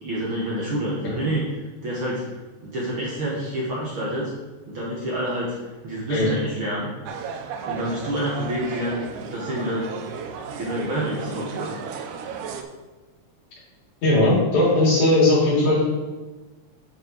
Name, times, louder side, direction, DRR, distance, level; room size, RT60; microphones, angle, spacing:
voice 1, 0.0-1.4 1.8-2.3 2.6-4.3 4.7-5.6 5.8-6.9 7.6-10.1 10.6-11.7, right 1 dB, 55° right, -5 dB, 1.7 m, -28 dB
sound 1, 7.1-12.6, right 6 dB, 85° right, 2.1 m, -35 dB
voice 2, 14.0-15.8, left 2 dB, 70° left, -6 dB, 4.1 m, -18 dB
9.4 x 4.5 x 4.4 m, 1.2 s
omnidirectional pair, 3.6 m